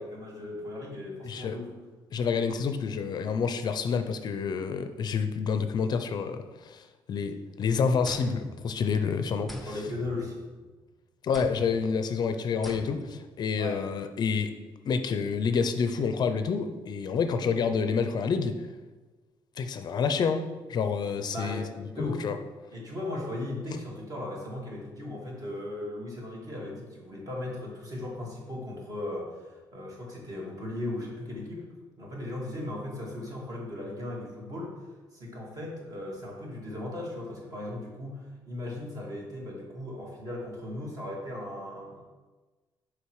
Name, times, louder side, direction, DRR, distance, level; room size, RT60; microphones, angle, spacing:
voice 1, 0.0-1.7 9.7-10.4 13.6-13.8 21.3-22.3 22.7-31.6 32.0-34.8 35.1-42.0, left 1 dB, 40° right, -3 dB, 2.3 m, -37 dB
voice 2, 1.2-1.6 2.1-9.7 11.2-14.5 14.9-18.6 19.6-20.4 20.7-22.4, left 5 dB, 50° left, 8 dB, 0.5 m, -28 dB
sound 1, 8.0-9.1 9.5-10.8 11.3-11.9 12.6-13.3, left 1 dB, ahead, 0.7 m, -43 dB
6.8 x 5.0 x 4.8 m, 1.3 s
cardioid pair, 125°, 9 cm